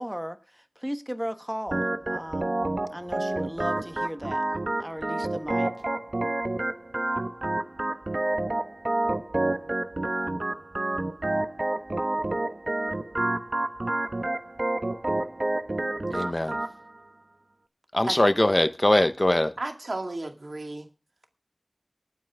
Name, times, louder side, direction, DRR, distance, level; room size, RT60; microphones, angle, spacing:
voice 1, 0.0-4.4 4.8-5.7, equal, 5° right, 1.3 m, -36 dB
Organ, 1.7-16.7, right 2 dB, 55° right, 1.0 m, -29 dB
voice 2, 16.1-16.6 17.9-19.5, left 1 dB, 35° left, 1.0 m, -22 dB
voice 3, 19.6-20.9, right 2 dB, 80° right, 2.1 m, -33 dB
19.5 x 9.4 x 3.6 m
wide cardioid pair, 45°, 0 cm